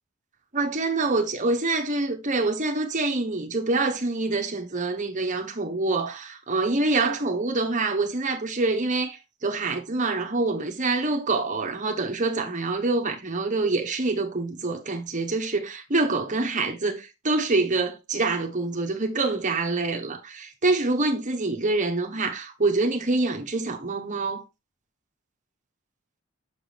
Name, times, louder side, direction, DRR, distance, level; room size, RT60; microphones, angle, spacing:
voice 1, 0.5-24.4, right 3 dB, 35° right, 1.1 m, -26 dB
6.1 x 6.0 x 3.4 m
head